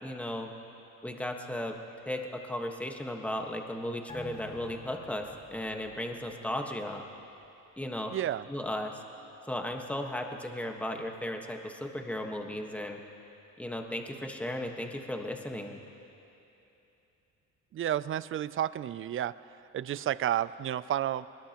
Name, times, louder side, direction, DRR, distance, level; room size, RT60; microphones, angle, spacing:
voice 1, 0.0-0.5 1.0-1.7 2.0-7.0 7.8-8.2 8.5-9.0 9.5-13.0 13.6-15.8, left 1 dB, 5° left, 2 dB, 1.4 m, -35 dB
sound 1, 4.1-7.0 7.3-7.4, left 1 dB, 20° left, 2.5 m, -50 dB
voice 2, 8.1-8.5 17.7-19.3 19.7-21.3, right 11 dB, 45° right, 17 dB, 0.4 m, -31 dB
23.5 x 20.5 x 3.0 m, 2.9 s
cardioid pair, 90°, 30 cm